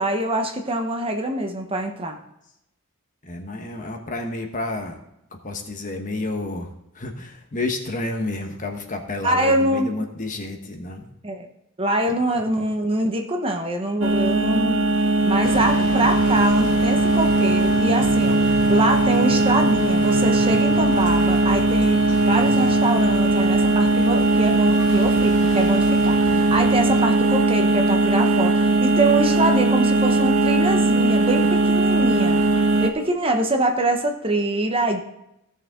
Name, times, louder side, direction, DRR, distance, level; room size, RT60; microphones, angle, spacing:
voice 1, 0.0-2.2 9.2-9.9 11.2-11.5 11.8-14.8 15.2-32.4 32.8-35.0, right 1 dB, 25° right, 4 dB, 0.9 m, -24 dB
voice 2, 3.2-5.0 5.3-6.7 6.9-11.1, left 2 dB, 35° left, 4 dB, 1.2 m, -30 dB
sound 1, 14.0-32.9, right 2 dB, 65° right, 1.0 m, -19 dB
sound 2, 15.4-27.0, left 1 dB, 60° left, 2.4 m, -34 dB
16.5 x 6.7 x 3.7 m, 0.84 s
head